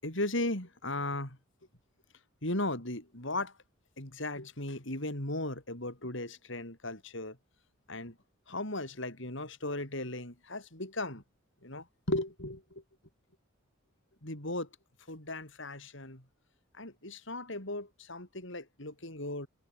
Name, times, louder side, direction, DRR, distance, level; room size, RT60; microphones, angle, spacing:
voice 1, 0.0-1.4 2.4-3.5 4.0-7.3 7.9-8.1 8.5-11.2 11.6-12.6 14.2-14.7 15.1-16.2 16.8-19.5, left 2 dB, 65° left, 7.0 m, -36 dB
head